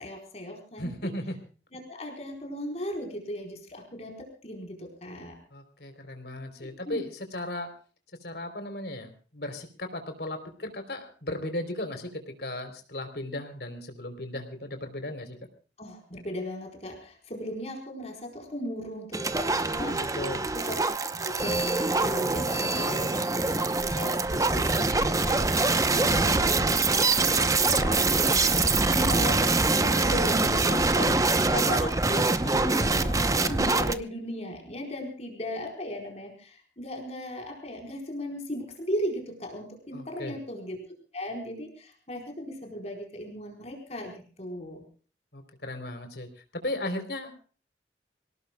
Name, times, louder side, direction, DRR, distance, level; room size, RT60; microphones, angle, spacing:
voice 1, 0.0-1.1 1.7-5.4 6.6-7.0 15.8-20.0 20.3-20.7 21.2-40.8 41.1-44.8, left 1 dB, 40° left, 2 dB, 4.4 m, -37 dB
voice 2, 0.8-1.4 5.5-7.7 8.2-15.4 19.9-20.4 25.7-26.4 39.9-40.4 45.3-46.3 46.6-47.3, left 1 dB, 65° left, 7 dB, 3.6 m, -36 dB
sound 1, 19.1-33.9, right 3 dB, 20° right, 0.8 m, -24 dB
26.5 x 18.0 x 2.3 m, 0.40 s
head